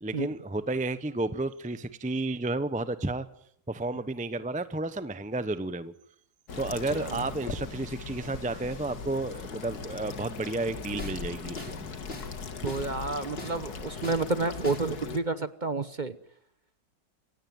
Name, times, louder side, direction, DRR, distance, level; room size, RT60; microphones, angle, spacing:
voice 1, 0.0-3.3 3.7-5.9 6.6-11.9, right 2 dB, 5° right, 13 dB, 0.8 m, -32 dB
sound 1, 6.5-15.2, left 5 dB, 80° left, 2.3 m, -39 dB
voice 2, 6.9-7.2 12.6-16.2, right 3 dB, 35° right, 13 dB, 1.1 m, -30 dB
sound 2, 11.0-11.2 11.6-11.8 12.1-12.3 12.7-12.9 13.4-13.6 14.0-14.2 14.6-14.9, left 1 dB, 40° left, 3.6 m, -40 dB
27.0 x 17.0 x 9.4 m, 0.70 s
omnidirectional pair, 1.6 m